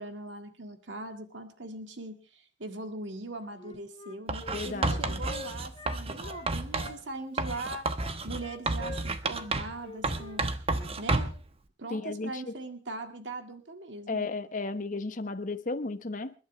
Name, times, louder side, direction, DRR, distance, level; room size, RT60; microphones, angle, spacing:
voice 1, 0.0-7.9 8.2-10.5 11.0-11.3 11.8-14.3, right 2 dB, 75° right, 2.0 m, -40 dB
Wind instrument woodwind instrument, 3.6-7.0 7.3-10.4 10.7-10.9, left 3 dB, 30° left, 1.5 m, -46 dB
Writing, 4.3-7.0 7.4-9.8 10.0-11.4, right 2 dB, 30° right, 1.1 m, -31 dB
voice 2, 4.5-5.2 11.9-12.5 14.1-16.3, left 3 dB, 45° left, 1.1 m, -34 dB
28.0 x 12.0 x 3.2 m
head